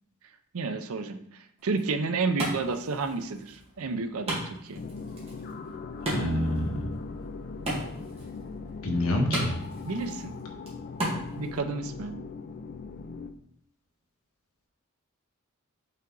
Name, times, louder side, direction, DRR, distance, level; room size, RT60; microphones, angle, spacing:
voice 1, 0.5-1.2 1.6-4.8 9.8-10.3 11.4-12.2, right 4 dB, 75° right, 9 dB, 0.6 m, -31 dB
Wood, 1.6-11.6, right 1 dB, 25° right, 1.8 m, -37 dB
sound 1, 4.7-13.3, left 4 dB, 45° left, 0.4 m, -40 dB
voice 2, 6.1-6.8 8.8-9.5, left 1 dB, 80° left, 1 dB, 1.3 m, -27 dB
5.6 x 4.6 x 3.9 m, 0.70 s
head